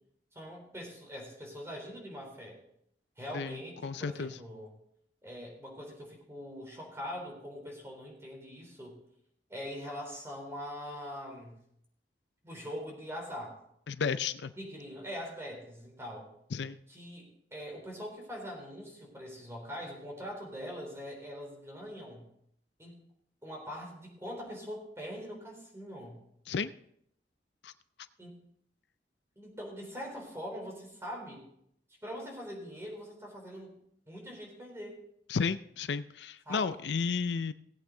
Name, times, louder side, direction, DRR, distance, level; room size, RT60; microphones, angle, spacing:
voice 1, 0.3-2.6 3.2-4.7 5.2-9.0 9.5-11.6 12.4-13.6 14.6-16.3 16.9-22.3 22.8-23.0 23.4-26.2 28.2-28.4 29.4-31.4 32.0-33.8 34.1-35.0 36.5-36.7, equal, 15° right, 0 dB, 3.8 m, -43 dB
voice 2, 3.8-4.4 13.9-14.5 16.5-16.8 26.5-26.7 27.6-27.7 35.3-37.5, left 5 dB, 80° left, 13 dB, 0.5 m, -32 dB
18.0 x 8.4 x 3.9 m, 0.72 s
head